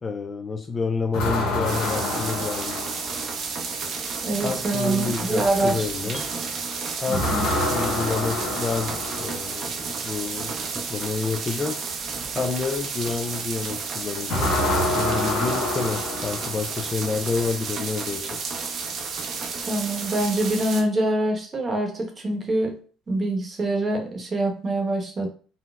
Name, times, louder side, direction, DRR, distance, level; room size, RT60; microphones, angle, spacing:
voice 1, 0.0-2.7 4.4-6.3 7.0-7.3 7.7-11.8 12.3-18.6, left 4 dB, 30° left, 7 dB, 0.3 m, -29 dB
sound 1, 1.1-3.5 7.1-9.6 14.3-16.9, left 1 dB, 80° left, 1.1 m, -27 dB
sound 2, 1.6-20.8, right 5 dB, 55° right, 0.6 m, -31 dB
voice 2, 4.2-5.9 6.1-6.2 7.1-7.7 19.7-22.8 23.1-25.3, right 1 dB, 30° right, 2 dB, 0.9 m, -25 dB
3.9 x 2.0 x 2.4 m, 0.39 s
supercardioid pair, 95°, 0 cm